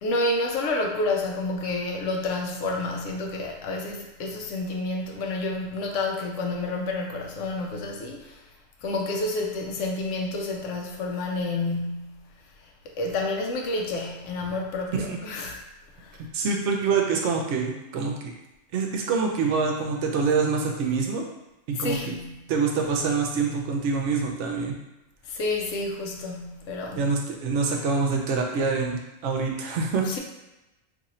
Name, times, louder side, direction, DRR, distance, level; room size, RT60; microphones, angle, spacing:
voice 1, 0.0-8.4 8.8-12.2 13.0-15.6 16.0-16.2 21.8-22.4 25.3-27.1 30.1-30.2, left 2 dB, 75° left, 1 dB, 0.9 m, -29 dB
voice 2, 16.3-18.3 18.7-21.2 21.7-22.0 22.5-24.8 26.9-30.1, right 4 dB, 70° right, 1 dB, 0.8 m, -25 dB
2.7 x 2.5 x 4.1 m, 0.97 s
omnidirectional pair, 1.3 m